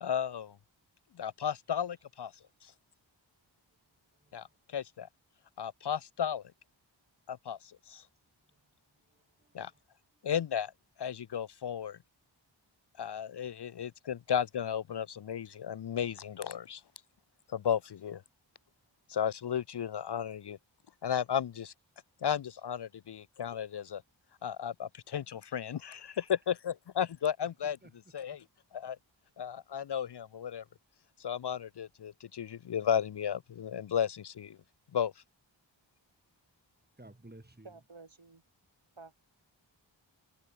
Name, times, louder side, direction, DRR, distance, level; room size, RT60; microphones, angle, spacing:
voice 1, 0.0-0.6 1.2-2.3 4.3-4.5 4.7-5.1 5.6-6.4 7.3-8.0 9.5-9.7 10.2-10.7 11.0-12.0 13.0-16.8 17.5-18.2 19.1-20.6 21.0-21.7 22.2-24.0 24.4-27.8 28.1-28.4 28.7-29.0 29.4-30.6 31.2-34.6 34.9-35.1, left 8 dB, 60° left, 0.5 m, -34 dB
voice 2, 4.2-4.6 9.1-9.8 25.8-26.2 27.6-27.9 37.0-37.7, right 1 dB, 20° right, 3.9 m, -56 dB
voice 3, 37.6-38.4 39.0-39.2, right 3 dB, 70° right, 7.7 m, -52 dB
wide cardioid pair, 70°, 47 cm